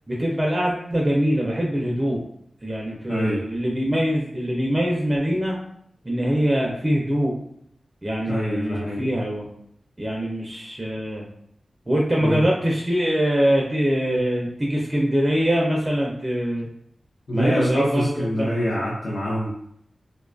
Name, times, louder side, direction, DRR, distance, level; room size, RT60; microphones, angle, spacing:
voice 1, 0.1-2.2 2.6-5.6 6.0-7.3 8.0-9.5 10.0-11.2 11.9-16.7 17.3-18.5, equal, 20° right, -3 dB, 0.4 m, -23 dB
voice 2, 3.1-3.4 8.3-9.1 12.2-12.4 17.3-19.5, equal, 70° left, -7 dB, 0.6 m, -25 dB
2.5 x 2.3 x 2.3 m, 0.70 s
wide cardioid pair, 105°, 0 cm